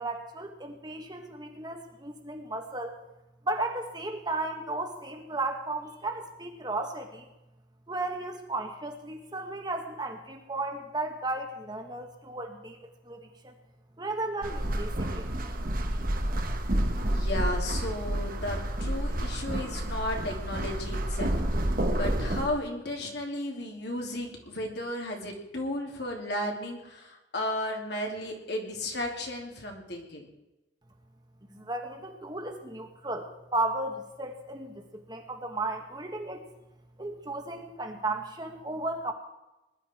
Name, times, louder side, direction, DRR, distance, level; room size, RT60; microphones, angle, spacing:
voice 1, 0.0-2.9 3.5-7.3 7.9-12.8 13.0-13.5 14.0-15.3 31.5-36.4 37.0-39.1, right 2 dB, 20° right, 4 dB, 1.7 m, -34 dB
sound 1, 14.4-22.5, right 1 dB, 50° right, 1.3 m, -29 dB
voice 2, 17.0-21.3 21.9-30.3, left 1 dB, 60° left, 1 dB, 3.0 m, -34 dB
20.5 x 11.5 x 4.5 m, 0.98 s
head